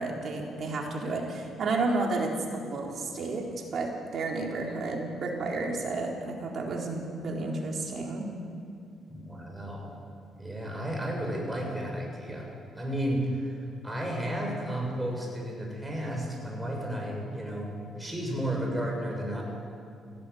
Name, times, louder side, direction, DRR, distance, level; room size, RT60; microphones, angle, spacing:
voice 1, 0.0-3.4 3.7-8.3, right 3 dB, 55° right, 0 dB, 4.1 m, -31 dB
voice 2, 9.1-9.9 10.4-12.5 12.7-13.6 13.8-19.4, right 1 dB, 10° right, -1 dB, 6.7 m, -33 dB
16.5 x 16.5 x 9.6 m, 2.6 s
cardioid pair, 90°, 0 cm